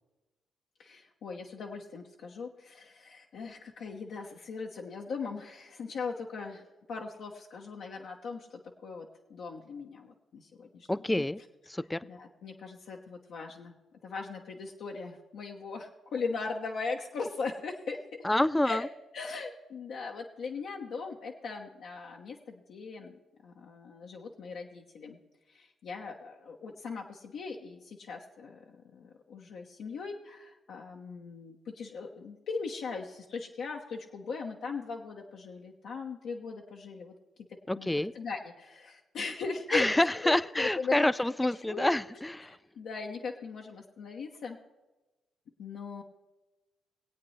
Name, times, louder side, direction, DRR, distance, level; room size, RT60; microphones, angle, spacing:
voice 1, 0.8-11.2 12.0-18.0 18.6-18.8 19.1-25.2 25.5-37.1 37.8-37.9 38.1-39.9 40.2-41.0 41.6-42.0 42.4-44.6 45.6-46.0, left 4 dB, 70° left, 0.9 m, -39 dB
voice 2, 10.9-11.4 11.7-12.0 18.2-18.8 37.7-38.1 39.7-42.6, left 1 dB, 15° left, 0.4 m, -27 dB
21.0 x 8.5 x 3.2 m
hypercardioid pair, 45°, 0 cm